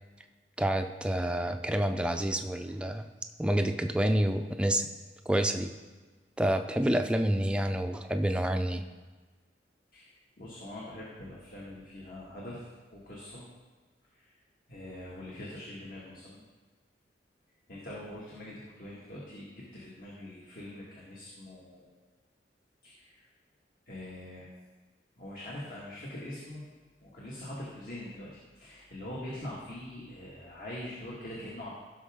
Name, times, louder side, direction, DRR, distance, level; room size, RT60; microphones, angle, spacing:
voice 1, 0.6-3.1 3.4-4.9 5.3-5.7 6.4-8.8, right 1 dB, 5° right, 6 dB, 0.5 m, -28 dB
voice 2, 10.4-12.7 12.9-13.4 14.1-14.3 14.7-16.4 17.7-21.9 22.8-23.3 23.9-24.5 25.2-26.6 27.0-31.7, left 1 dB, 50° left, -6 dB, 1.9 m, -43 dB
16.0 x 6.2 x 3.7 m, 1.3 s
head